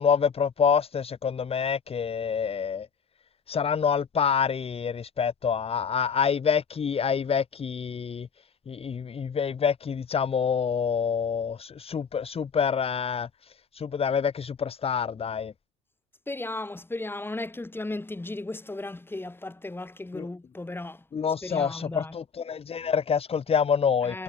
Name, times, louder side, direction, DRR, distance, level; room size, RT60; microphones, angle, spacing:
voice 1, 0.0-2.9 3.5-8.3 8.7-13.3 13.7-15.5 20.1-20.3 21.1-24.2, left 7 dB, 30° left, 1.5 m, -27 dB
voice 2, 16.3-21.0 21.4-22.2 24.0-24.2, left 2 dB, 10° left, 5.1 m, -35 dB
supercardioid pair, 80°, 18 cm